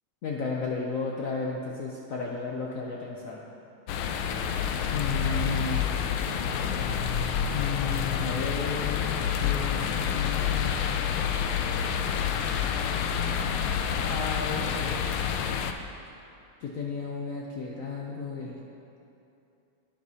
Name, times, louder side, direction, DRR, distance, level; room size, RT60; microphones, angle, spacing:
voice 1, 0.2-3.5 4.9-5.8 7.5-10.7 13.2-15.1 16.6-18.6, left 4 dB, 70° left, -2 dB, 0.7 m, -34 dB
sound 1, 3.9-15.7, left 8 dB, 90° left, 1.4 m, -28 dB
11.0 x 9.7 x 2.8 m, 2.7 s
omnidirectional pair, 2.2 m